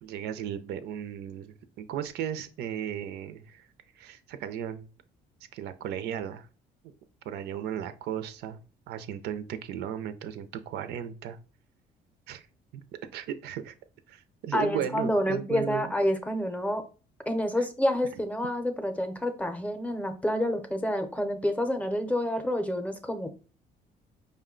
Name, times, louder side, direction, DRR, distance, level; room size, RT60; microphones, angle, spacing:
voice 1, 0.0-3.7 4.0-4.9 5.5-6.5 6.8-6.9 7.3-8.6 8.9-11.4 12.3-12.5 12.7-12.8 13.1-13.7 14.1-15.8, right 9 dB, 80° right, 11 dB, 0.5 m, -35 dB
voice 2, 14.5-16.8 17.3-23.3, left 1 dB, 10° left, 7 dB, 0.6 m, -28 dB
5.1 x 2.2 x 3.7 m, 0.36 s
cardioid pair, 110°, 17 cm